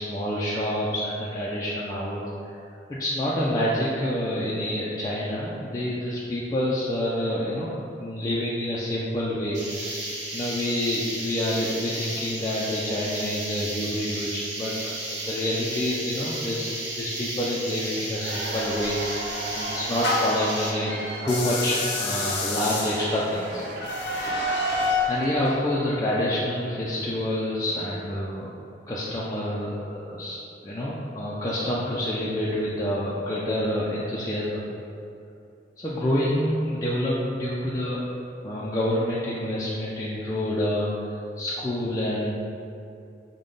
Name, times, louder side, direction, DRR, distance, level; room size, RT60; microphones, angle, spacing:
voice 1, 0.0-2.6 2.9-9.9 10.3-19.2 19.5-21.0 21.2-23.6 24.5-28.5 28.9-34.6 35.8-38.0 38.4-42.3, left 1 dB, 20° left, -7 dB, 0.3 m, -28 dB
sound 1, 9.5-20.7, right 1 dB, 85° right, 0.9 m, -34 dB
Cheering / Applause / Crowd, 18.0-25.6, right 1 dB, 50° right, 0.5 m, -36 dB
sound 2, 18.7-20.5 21.2-25.2, left 2 dB, 80° left, 0.7 m, -29 dB
5.1 x 2.2 x 3.8 m, 2.6 s
head